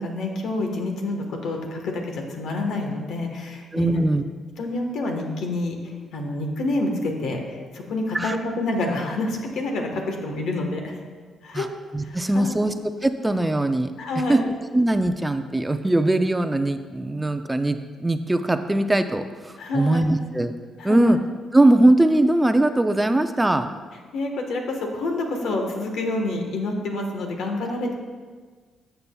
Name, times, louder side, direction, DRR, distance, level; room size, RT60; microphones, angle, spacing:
voice 1, 0.0-4.0 4.6-11.0 11.4-11.7 12.0-12.6 14.0-14.4 19.6-20.1 20.8-21.2 24.1-27.9, left 2 dB, 75° left, 2 dB, 1.2 m, -28 dB
voice 2, 3.7-4.2 8.1-8.4 11.5-11.7 11.9-12.7 13.0-13.9 14.3-14.4 14.7-20.5 20.8-21.2 21.5-23.7, right 1 dB, 15° right, 8 dB, 0.4 m, -20 dB
12.5 x 6.8 x 2.3 m, 1.5 s
cardioid pair, 90°, 0 cm